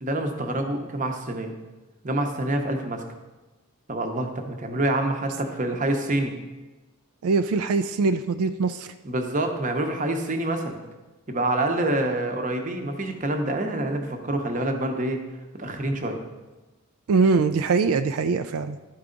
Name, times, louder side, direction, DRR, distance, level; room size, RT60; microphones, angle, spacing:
voice 1, 0.0-1.5 2.0-3.0 3.9-6.3 9.0-10.8 11.3-15.2 15.5-16.2, right 1 dB, 35° right, 5 dB, 0.8 m, -26 dB
voice 2, 7.2-8.9 17.1-18.8, right 4 dB, 80° right, 8 dB, 0.4 m, -22 dB
12.0 x 4.7 x 3.8 m, 1.2 s
head